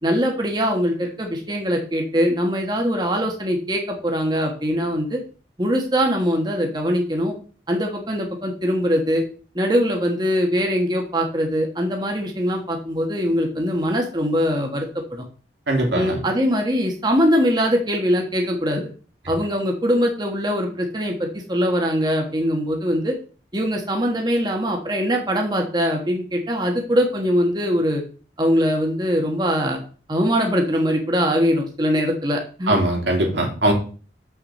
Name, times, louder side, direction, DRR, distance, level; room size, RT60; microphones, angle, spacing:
voice 1, 0.0-5.2 5.6-7.3 7.7-9.2 9.5-15.2 15.9-18.9 19.3-23.1 23.5-28.0 28.4-29.8 30.1-32.8, equal, 25° right, 1 dB, 1.3 m, -22 dB
voice 2, 15.7-16.2 32.7-33.7, right 1 dB, 85° right, 1 dB, 2.4 m, -20 dB
7.3 x 6.0 x 4.2 m, 0.39 s
head